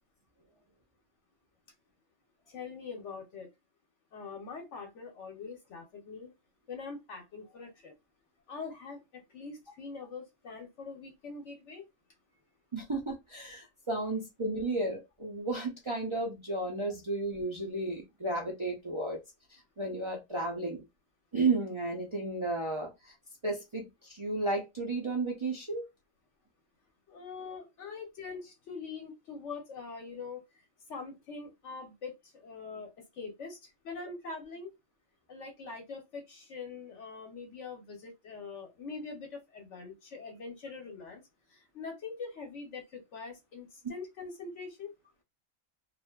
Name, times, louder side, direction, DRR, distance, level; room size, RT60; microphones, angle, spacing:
voice 1, 2.5-3.5 4.1-6.3 6.7-7.9 8.5-11.8 27.1-34.7 35.3-41.2 41.5-44.9, left 4 dB, 70° left, 1.0 m, -43 dB
voice 2, 12.7-19.2 19.8-20.9 21.3-23.1 23.4-25.8, right 2 dB, 40° right, 0.4 m, -33 dB
2.5 x 2.5 x 2.2 m
omnidirectional pair, 1.3 m